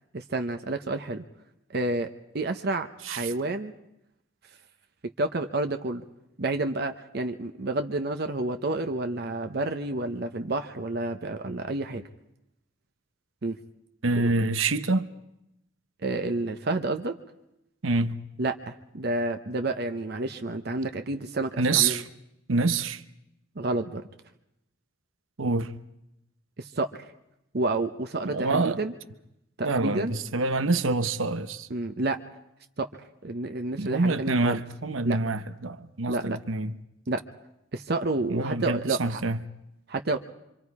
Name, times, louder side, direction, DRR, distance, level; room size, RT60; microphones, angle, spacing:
voice 1, 0.1-1.2 1.7-2.1 2.3-3.7 5.2-6.0 6.4-12.0 13.4-13.6 14.2-14.3 16.0-17.1 18.4-22.0 23.6-24.0 26.6-27.0 27.5-28.9 29.6-30.2 31.7-32.2 32.8-32.9 33.2-34.6 35.0-35.2 36.1-36.4 37.1-37.2 37.7-39.2 39.9-40.2, right 2 dB, 50° right, 0.8 m, -29 dB
voice 2, 14.0-15.1 17.8-18.2 21.6-22.0 22.5-23.0 25.4-25.7 28.2-28.8 29.6-31.7 33.8-36.7 38.3-39.4, right 3 dB, 90° right, 1.0 m, -26 dB
26.0 x 25.5 x 4.8 m
head